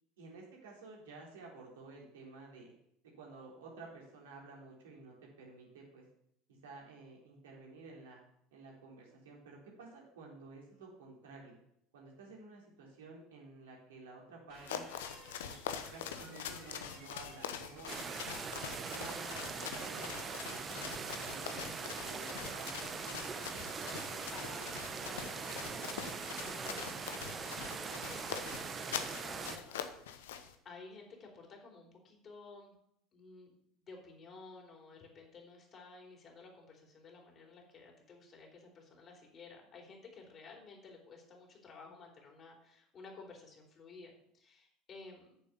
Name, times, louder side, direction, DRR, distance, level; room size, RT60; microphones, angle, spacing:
voice 1, 0.2-2.7 3.0-6.0 6.6-8.2 8.5-11.6 11.9-14.8 15.4-15.5 15.9-18.1 18.7-22.9, right 3 dB, 75° right, -2 dB, 3.7 m, -52 dB
sound 1, 14.5-30.5, left 9 dB, 75° left, 1.0 m, -44 dB
sound 2, 14.5-21.2, right 3 dB, 55° right, 5.2 m, -57 dB
sound 3, 17.9-29.6, right 5 dB, 35° right, 1.2 m, -42 dB
voice 2, 23.6-29.8 30.1-32.7 33.1-33.5 33.8-45.3, left 4 dB, 40° left, 1 dB, 4.1 m, -54 dB
9.3 x 7.1 x 7.0 m, 0.71 s
hypercardioid pair, 75°, 0 cm